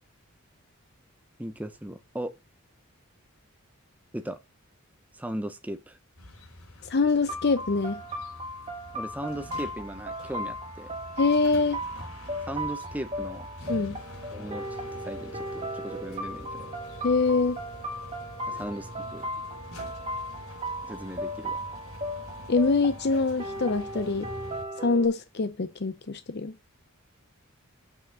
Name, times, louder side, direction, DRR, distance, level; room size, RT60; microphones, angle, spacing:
voice 1, 1.4-2.4 4.1-4.4 5.1-6.0 8.9-10.9 12.5-13.5 14.3-16.7 18.5-19.3 20.8-21.6, right 1 dB, 5° right, 0.7 m, -37 dB
sound 1, 6.2-24.6, equal, 75° left, 3.2 m, -45 dB
voice 2, 6.8-8.0 11.2-11.8 13.7-14.0 17.0-17.6 22.5-24.3 24.8-26.5, left 4 dB, 50° left, 0.6 m, -24 dB
sound 2, 7.3-25.1, equal, 25° right, 1.4 m, -36 dB
6.1 x 5.6 x 7.1 m
head